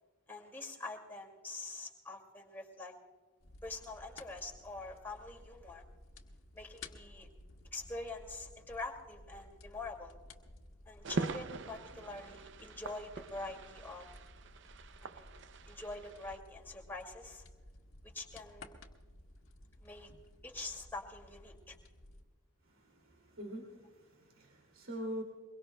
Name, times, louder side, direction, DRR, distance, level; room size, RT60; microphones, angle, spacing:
voice 1, 0.3-2.9 3.6-5.8 6.5-7.3 7.7-10.2 10.9-14.1 15.0-15.3 15.7-17.4 18.0-18.8 19.8-20.1 20.4-21.8, left 2 dB, 10° left, 0 dB, 2.2 m, -45 dB
sound 1, 3.4-22.3, left 2 dB, 85° left, 1.5 m, -56 dB
sound 2, 11.0-16.4, right 3 dB, 60° right, 0.5 m, -43 dB
voice 2, 22.6-25.2, equal, 85° right, 0 dB, 2.6 m, -44 dB
23.5 x 22.5 x 2.2 m, 1.4 s
head